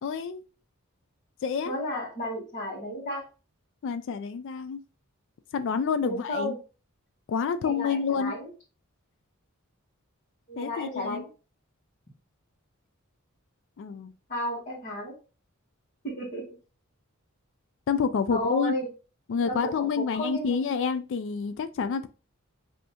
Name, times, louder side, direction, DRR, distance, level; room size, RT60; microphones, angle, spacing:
voice 1, 0.0-0.4 1.4-1.8 3.8-4.8 5.5-6.5 7.3-8.3 10.6-11.2 13.8-14.1 17.9-18.7 19.3-22.1, left 6 dB, 60° left, 0.3 m, -28 dB
voice 2, 1.6-3.2 6.0-6.6 7.6-8.5 10.5-11.2 14.3-15.1 16.0-16.5 18.3-18.9 19.5-20.6, equal, 40° left, 1.5 m, -33 dB
5.3 x 2.8 x 2.8 m
head